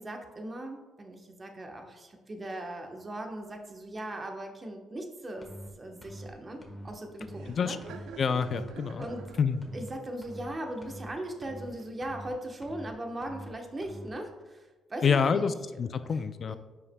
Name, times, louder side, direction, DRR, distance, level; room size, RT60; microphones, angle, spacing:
voice 1, 0.0-5.5 5.8-7.7 9.0-9.2 9.7-15.5 16.5-16.6, right 1 dB, 30° right, 3 dB, 1.0 m, -39 dB
sound 1, 5.4-5.7 6.0-6.3 6.6-6.9 7.2-7.5 7.8-8.1 8.4-8.7 9.0-9.3 9.6-9.9 10.2-10.5 10.8-11.1 11.4-11.7 12.0-12.3 12.6-12.9 13.2-13.5 13.8-14.1, equal, 20° left, 1.3 m, -44 dB
Laughter, 5.9-12.1, right 5 dB, 80° right, 0.5 m, -50 dB
voice 2, 7.5-7.8 8.2-9.1 9.4-9.6 15.0-16.5, left 6 dB, 50° left, 12 dB, 0.4 m, -27 dB
9.4 x 5.7 x 2.2 m, 1.2 s
cardioid pair, 90°, 0 cm